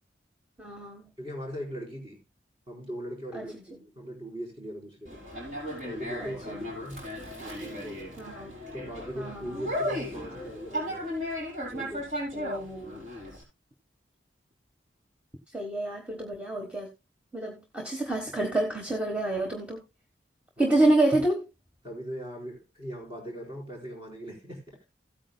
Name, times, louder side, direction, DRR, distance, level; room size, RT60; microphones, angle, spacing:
voice 1, 0.6-1.1 3.3-3.6 6.2-6.7 8.2-8.6 9.1-9.7 12.3-13.0 15.5-16.9 17.3-19.8 20.6-21.4, right 2 dB, 5° right, 1.2 m, -28 dB
voice 2, 1.2-2.2 2.7-5.2 5.8-7.0 7.4-8.2 8.7-11.2 11.7-12.1 20.6-20.7 21.8-24.9, equal, 30° right, 4.4 m, -40 dB
Conversation, 5.1-13.4, equal, 45° right, 5.8 m, -36 dB
16.5 x 8.9 x 2.3 m
head